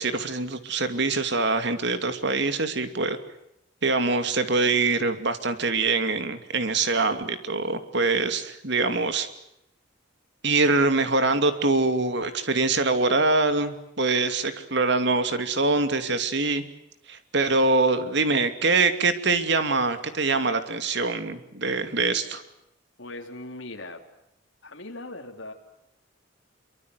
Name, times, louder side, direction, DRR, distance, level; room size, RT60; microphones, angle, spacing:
voice 1, 0.0-3.2 3.8-9.3 10.4-16.6 17.1-22.4, right 3 dB, 60° right, 9 dB, 2.7 m, -24 dB
voice 2, 23.0-24.0 24.6-25.5, left 2 dB, 70° left, 3 dB, 3.9 m, -39 dB
27.0 x 24.0 x 8.2 m, 0.81 s
head